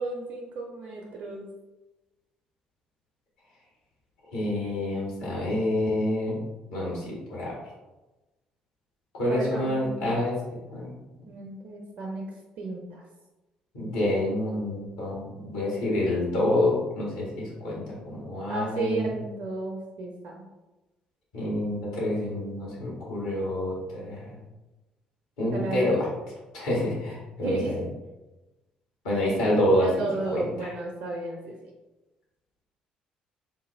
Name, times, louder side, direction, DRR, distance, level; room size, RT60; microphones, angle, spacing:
voice 1, 0.0-1.4 9.3-10.3 11.3-12.3 12.6-13.0 18.5-20.5 25.5-25.9 27.4-27.8 29.8-31.7, right 3 dB, 50° right, 0 dB, 0.4 m, -33 dB
voice 2, 4.3-6.4 6.7-7.5 9.1-10.3 10.7-10.9 13.7-19.1 21.3-24.3 25.4-26.0 26.5-27.8 29.0-29.9 30.3-30.7, left 1 dB, 65° left, -5 dB, 1.4 m, -27 dB
3.8 x 2.3 x 3.0 m, 1.1 s
figure-of-eight pair, 50°, 4 cm